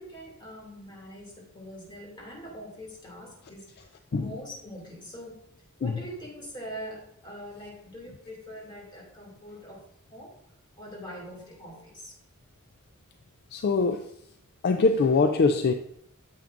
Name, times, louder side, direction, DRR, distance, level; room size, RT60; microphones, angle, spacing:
voice 1, 0.0-3.7 4.1-5.4 5.8-9.8 10.1-10.4 10.8-12.2, equal, 20° left, 2.4 m, -43 dB
voice 2, 13.5-14.1 14.6-15.7, left 4 dB, 50° left, 0.4 m, -23 dB
9.2 x 7.4 x 2.5 m
head